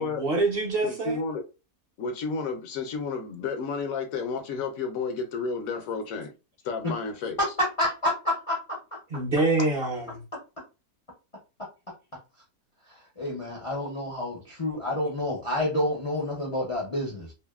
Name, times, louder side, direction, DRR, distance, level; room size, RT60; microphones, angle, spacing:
voice 1, 0.0-1.2 9.1-10.2, right 2 dB, 50° right, 0.8 m, -26 dB
voice 2, 0.8-1.5 2.0-6.3 6.6-7.4, left 4 dB, 70° left, 0.9 m, -31 dB
voice 3, 7.4-9.0 12.9-17.3, left 1 dB, 35° left, 0.5 m, -29 dB
2.7 x 2.5 x 2.3 m
omnidirectional pair, 1.6 m